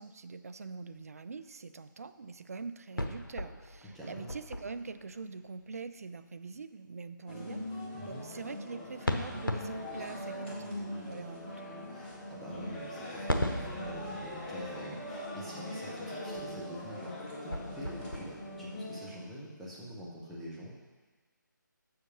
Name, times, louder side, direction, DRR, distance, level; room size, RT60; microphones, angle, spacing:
voice 1, 0.0-11.6, right 4 dB, 45° right, 11 dB, 0.4 m, -44 dB
sound 1, 2.9-5.3 9.1-10.9 13.3-16.2 16.6-16.8 17.1-18.8, left 1 dB, 85° left, 0.9 m, -38 dB
voice 2, 3.9-4.3 7.9-8.2 11.9-17.1 17.4-20.7, equal, ahead, -8 dB, 1.1 m, -45 dB
sound 2, 7.3-19.1, left 1 dB, 25° left, 1.7 m, -41 dB
7.6 x 6.5 x 5.7 m, 1.3 s
figure-of-eight pair, 150°, 11 cm